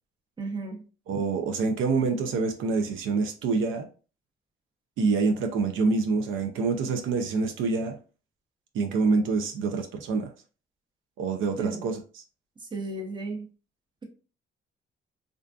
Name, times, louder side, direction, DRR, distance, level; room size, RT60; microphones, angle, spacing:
voice 1, 0.4-0.8 11.6-11.8 12.7-13.5, right 3 dB, 25° right, 0.7 m, -33 dB
voice 2, 1.1-3.9 5.0-8.0 8.7-10.3 11.2-12.2, right 4 dB, 80° right, 0.4 m, -26 dB
2.5 x 2.4 x 2.2 m
cardioid pair, 90°, 20 cm